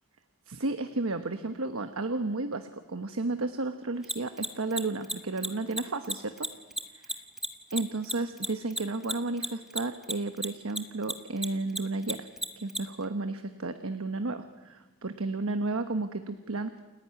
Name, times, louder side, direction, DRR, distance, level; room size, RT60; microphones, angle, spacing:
voice 1, 0.5-6.5 6.9-7.2 7.7-12.3 12.6-16.8, right 3 dB, 90° right, 8 dB, 1.1 m, -33 dB
Mechanisms, 4.0-10.8 11.0-12.8, right 1 dB, ahead, 1.0 m, -31 dB
29.0 x 10.5 x 9.5 m, 1.1 s
head